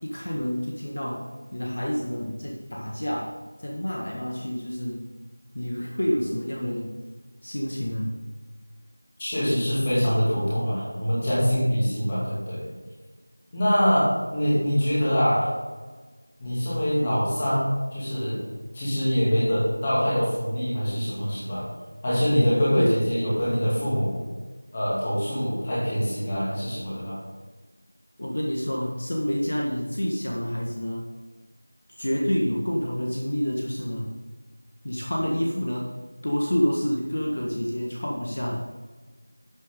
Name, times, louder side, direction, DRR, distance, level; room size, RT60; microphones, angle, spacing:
voice 1, 0.0-5.1 5.5-7.0 7.4-8.2 22.8-23.0 28.2-31.1 31.9-34.1 34.8-38.6, equal, 45° left, -2 dB, 1.6 m, -28 dB
voice 2, 9.2-12.7 13.5-15.5 16.4-18.5 18.7-21.6 22.0-24.3 24.7-27.2, equal, 15° left, -9 dB, 2.6 m, -24 dB
12.0 x 8.2 x 3.8 m, 1.3 s
figure-of-eight pair, 180°, 0 cm